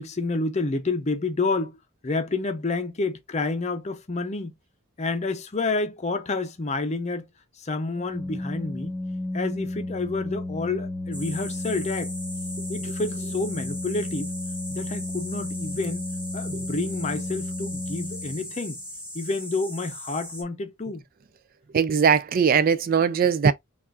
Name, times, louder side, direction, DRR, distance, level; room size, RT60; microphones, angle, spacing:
voice 1, 0.0-1.8 2.0-4.5 5.0-7.3 7.6-9.0 9.3-12.1 12.7-14.3 14.7-16.1 16.3-18.8 19.1-21.0, left 3 dB, 35° left, 0.6 m, -29 dB
Organ, 7.9-18.7, left 2 dB, 15° left, 1.0 m, -33 dB
sound 1, 11.1-20.4, left 1 dB, 5° right, 1.2 m, -38 dB
voice 2, 21.7-23.5, right 6 dB, 45° right, 0.3 m, -20 dB
5.6 x 2.4 x 2.5 m
head